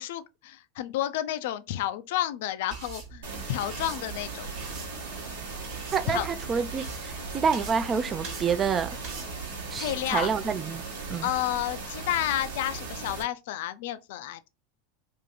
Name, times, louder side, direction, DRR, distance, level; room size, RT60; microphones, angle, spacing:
voice 1, 0.0-4.5 6.1-6.3 9.8-10.3 11.2-14.5, left 13 dB, 65° left, 0.3 m, -31 dB
sound 1, 2.7-9.3, right 5 dB, 55° right, 1.0 m, -43 dB
sound 2, 3.2-13.2, right 4 dB, 75° right, 1.1 m, -38 dB
voice 2, 5.9-9.0 9.7-11.3, right 6 dB, 30° right, 0.4 m, -28 dB
2.7 x 2.5 x 3.9 m
hypercardioid pair, 90°, 0 cm